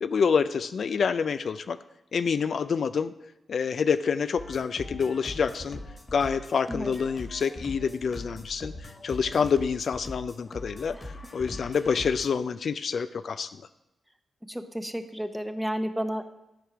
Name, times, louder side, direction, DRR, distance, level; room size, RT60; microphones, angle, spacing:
voice 1, 0.0-1.8 2.1-3.1 3.5-5.8 6.1-11.0 11.3-13.5, left 6 dB, 65° left, 12 dB, 0.3 m, -27 dB
sound 1, 4.4-12.3, left 1 dB, 40° left, 1.6 m, -41 dB
voice 2, 14.5-16.2, equal, 5° right, 8 dB, 0.8 m, -31 dB
11.5 x 4.6 x 4.9 m, 0.93 s
cardioid pair, 55°, 0 cm